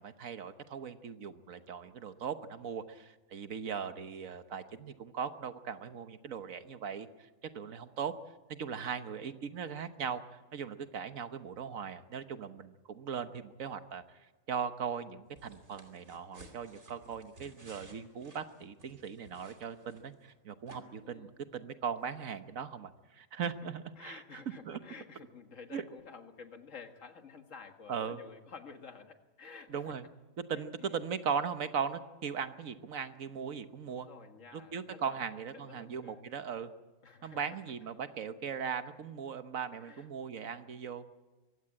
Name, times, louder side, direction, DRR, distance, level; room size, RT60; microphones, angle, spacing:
voice 1, 0.0-8.1 8.5-14.2 14.5-24.2 24.7-24.8 25.7-25.8 27.9-28.2 29.7-30.0 30.5-34.1 34.5-36.7 37.2-41.0, right 7 dB, 90° right, 10 dB, 1.5 m, -39 dB
sound 1, 15.4-20.3 20.7-20.8, right 1 dB, 60° right, 3.2 m, -56 dB
voice 2, 21.0-21.4 24.0-30.0 30.6-31.0 33.9-36.2 37.0-37.6 39.8-40.1, left 5 dB, 70° left, 6 dB, 2.1 m, -51 dB
23.5 x 16.5 x 8.8 m, 1.2 s
omnidirectional pair, 1.4 m